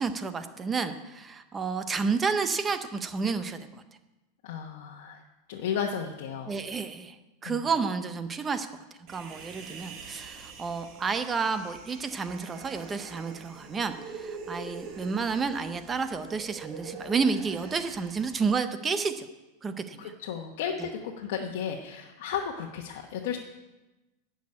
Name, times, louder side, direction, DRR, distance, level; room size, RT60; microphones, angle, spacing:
voice 1, 0.0-3.8 6.5-7.2 7.4-8.7 9.1-19.3 19.6-20.1 20.8-20.9, right 5 dB, 15° right, 10 dB, 0.6 m, -30 dB
voice 2, 4.4-5.2 5.5-6.5 7.4-7.7 20.0-23.4, left 7 dB, 60° left, 0 dB, 1.1 m, -34 dB
Human voice, 9.1-18.5, right 5 dB, 30° right, 1.5 m, -44 dB
11.0 x 6.3 x 8.6 m, 1.1 s
supercardioid pair, 175°, 0 cm